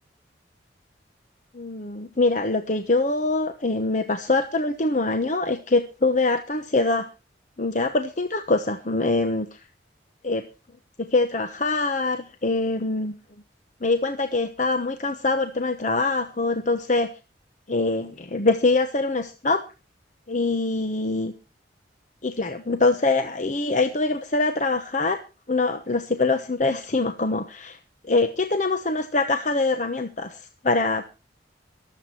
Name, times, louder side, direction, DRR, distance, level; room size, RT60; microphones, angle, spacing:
voice 1, 1.5-7.1 7.6-9.6 10.2-10.4 11.1-13.1 13.8-17.1 17.7-19.6 20.3-21.3 22.2-25.2 25.5-27.8 28.0-31.1, left 3 dB, 45° left, 8 dB, 1.0 m, -24 dB
22.5 x 8.2 x 4.4 m, 0.32 s
head